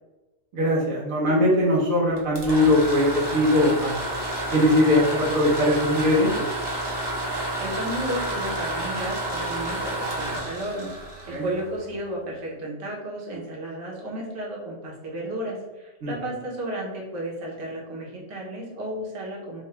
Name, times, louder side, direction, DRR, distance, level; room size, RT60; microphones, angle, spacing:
voice 1, 0.5-4.0 4.5-6.5 11.3-11.5 16.0-16.1, left 1 dB, 85° right, -4 dB, 1.3 m, -21 dB
sound 1, 2.2-12.0, right 1 dB, 25° right, 0.7 m, -30 dB
voice 2, 7.6-10.9 11.3-19.6, right 1 dB, 70° right, -4 dB, 1.4 m, -33 dB
3.8 x 2.3 x 4.2 m, 1.0 s
omnidirectional pair, 1.3 m